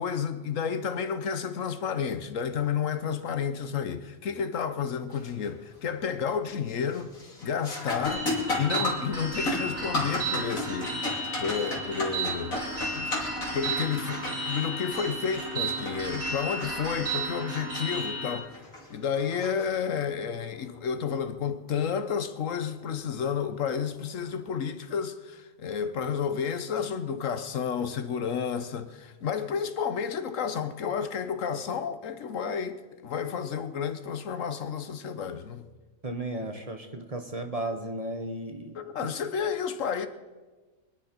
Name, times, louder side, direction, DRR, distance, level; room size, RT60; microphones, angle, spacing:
voice 1, 0.0-7.1 7.4-8.3 8.6-13.2 13.5-18.6 18.9-35.7 38.7-40.1, left 7 dB, 70° left, 1.2 m, -31 dB
sound 1, 5.1-5.5 5.9-6.3 6.7-20.2 22.7-22.8 23.6-23.9, left 2 dB, 85° left, 3.2 m, -35 dB
sound 2, 8.1-18.3, right 3 dB, 85° right, 4.7 m, -34 dB
voice 2, 36.0-38.8, right 1 dB, 30° right, 1.1 m, -34 dB
24.0 x 10.5 x 5.3 m
omnidirectional pair, 1.4 m